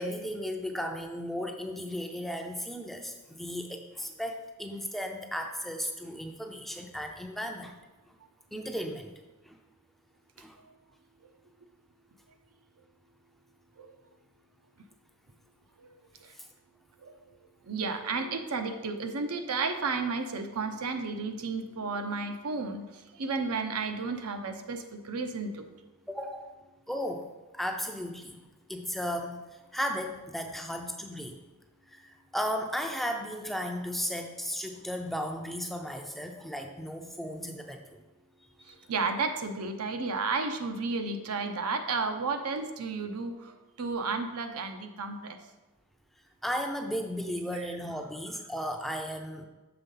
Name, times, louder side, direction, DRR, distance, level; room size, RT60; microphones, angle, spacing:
voice 1, 0.0-7.8 8.5-9.1 9.4-9.6 10.4-10.6 16.3-16.5 26.1-26.5 26.9-27.2 27.5-28.4 28.7-31.4 31.9-38.0 46.4-49.5, equal, ahead, 3 dB, 0.4 m, -35 dB
voice 2, 17.6-25.7 38.7-45.4, right 4 dB, 80° right, 6 dB, 0.7 m, -32 dB
6.9 x 3.7 x 5.4 m, 1.1 s
head